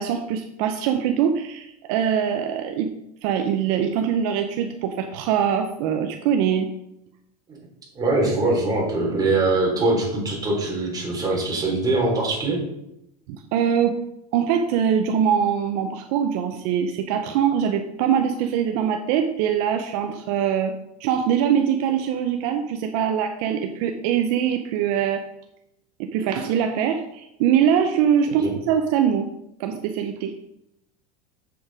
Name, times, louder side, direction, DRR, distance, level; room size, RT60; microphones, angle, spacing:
voice 1, 0.0-2.9 3.2-6.7 13.3-14.0 14.3-20.7 21.0-25.2 26.0-29.3 29.6-30.4, right 8 dB, 60° right, 5 dB, 0.9 m, -23 dB
voice 2, 8.0-12.6 28.4-28.5, right 2 dB, 20° right, -3 dB, 3.8 m, -22 dB
7.8 x 7.0 x 5.0 m, 0.83 s
supercardioid pair, 135°, 21 cm